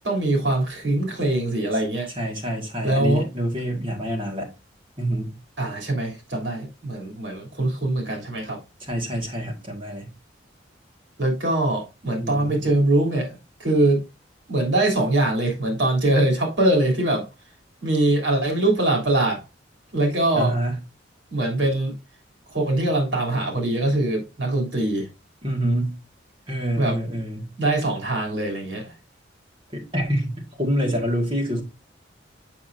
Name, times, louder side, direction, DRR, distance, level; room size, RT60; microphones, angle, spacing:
voice 1, 0.0-2.1 2.8-3.2 5.6-8.6 11.2-14.0 14.5-17.3 17.8-19.4 19.9-20.5 21.3-21.9 22.5-25.1 26.8-26.9 27.6-28.8, right 2 dB, 65° right, 3.1 m, -22 dB
voice 2, 2.1-4.5 5.0-5.4 8.8-10.1 12.1-12.7 20.4-20.8 25.4-26.0 26.5-27.5 29.7-31.6, equal, 25° right, 1.8 m, -26 dB
7.0 x 6.1 x 2.6 m
head